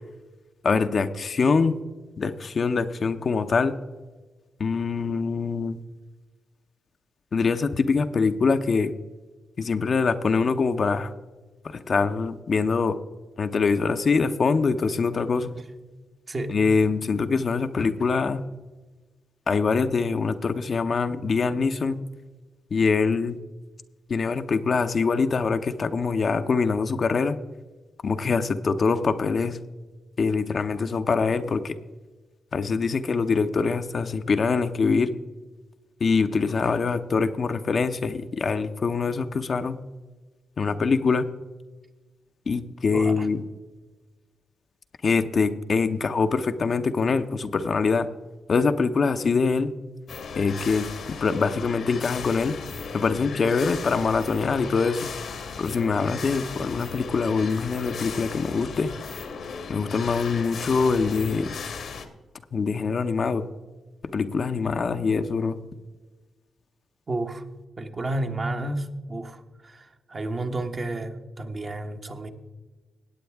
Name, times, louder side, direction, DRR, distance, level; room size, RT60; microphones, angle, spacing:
voice 1, 0.6-1.7 2.2-3.8 4.6-5.8 7.3-8.9 9.6-11.1 11.6-13.0 13.4-15.5 16.5-18.4 19.5-22.0 22.7-23.4 24.1-27.4 28.0-29.6 30.2-31.8 32.5-35.1 36.0-39.8 40.6-41.3 42.5-43.4 45.0-48.1 48.5-49.7 50.4-52.5 52.9-55.1 55.6-58.9 59.7-61.5 62.5-63.4 64.1-65.6, left 4 dB, 55° left, 8 dB, 0.7 m, -24 dB
voice 2, 16.3-16.6 42.9-43.3 67.1-67.4 67.8-72.3, right 2 dB, 40° right, 5 dB, 1.2 m, -31 dB
sound 1, 50.1-62.1, left 5 dB, 70° left, 1.2 m, -36 dB
17.0 x 8.5 x 3.5 m, 1.2 s
supercardioid pair, 55°, 0 cm